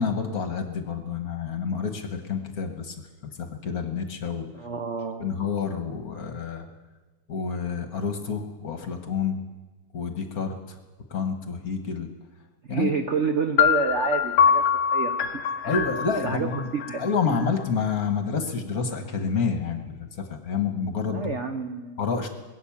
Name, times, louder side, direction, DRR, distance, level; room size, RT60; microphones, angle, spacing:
voice 1, 0.0-2.9 3.2-4.5 5.2-6.7 7.3-9.4 9.9-10.8 11.1-12.1 12.7-12.9 15.6-16.7 17.0-21.4 22.0-22.3, left 5 dB, 45° left, 5 dB, 1.6 m, -28 dB
voice 2, 4.5-5.4 12.7-14.6 14.9-15.3 15.6-15.8 16.2-17.5 21.1-22.0, right 5 dB, 70° right, 6 dB, 0.6 m, -29 dB
sound 1, 13.6-17.4, left 7 dB, 70° left, 1.4 m, -24 dB
21.5 x 9.0 x 7.2 m, 1.2 s
omnidirectional pair, 2.4 m